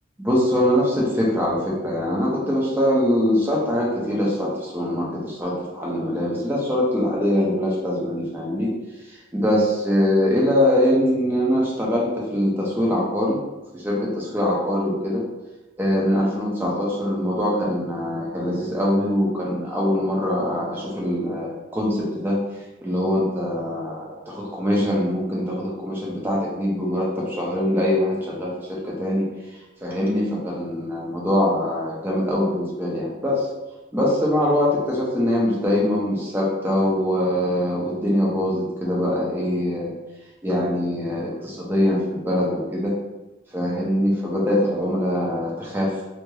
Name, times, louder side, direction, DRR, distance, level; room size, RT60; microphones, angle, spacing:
voice 1, 0.2-8.7 9.3-13.4 13.8-15.2 15.8-22.4 22.8-29.3 29.8-33.4 33.9-39.9 40.4-42.9 43.5-45.9, left 1 dB, 10° right, -4 dB, 0.5 m, -23 dB
3.0 x 2.8 x 2.3 m, 1.1 s
head